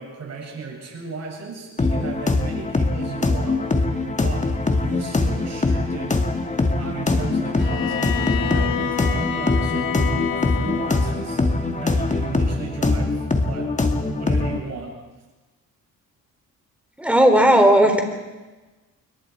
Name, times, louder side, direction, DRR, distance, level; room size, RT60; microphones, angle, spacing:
voice 1, 0.0-6.2 6.8-13.7 14.2-15.0, right 5 dB, 50° right, 0 dB, 7.2 m, -35 dB
sound 1, 1.8-14.6, left 2 dB, 20° left, 2.0 m, -22 dB
Bowed string instrument, 7.6-11.3, left 9 dB, 80° left, 1.6 m, -28 dB
voice 2, 17.0-18.0, right 1 dB, 5° right, 4 dB, 3.8 m, -15 dB
28.0 x 23.5 x 4.8 m, 1.2 s
cardioid pair, 115°, 33 cm